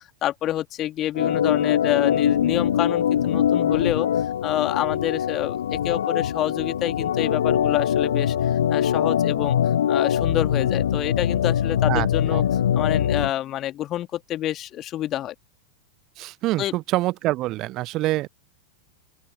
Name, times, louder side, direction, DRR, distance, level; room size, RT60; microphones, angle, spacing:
voice 1, 0.0-4.1 4.4-9.6 9.9-12.4 12.7-15.3 16.6-16.7, left 13 dB, 30° left, 1.9 m, -27 dB
Organ, 1.1-13.3, left 9 dB, 65° left, 0.8 m, -22 dB
voice 2, 11.9-12.4 16.2-18.3, right 17 dB, 35° right, 0.6 m, -26 dB
open air
figure-of-eight pair, 90°, 0 cm